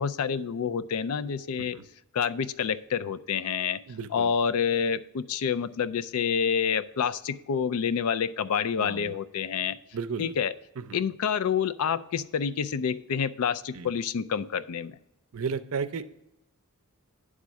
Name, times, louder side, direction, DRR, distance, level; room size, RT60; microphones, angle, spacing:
voice 1, 0.0-1.8 2.1-3.8 4.1-9.8 10.2-10.5 10.9-15.0, left 7 dB, 80° left, 14 dB, 0.4 m, -28 dB
voice 2, 3.9-4.3 8.8-9.1 9.9-10.3 10.8-11.0 13.7-13.9 15.3-16.0, right 5 dB, 70° right, 12 dB, 0.5 m, -33 dB
9.6 x 3.7 x 6.1 m, 0.83 s
head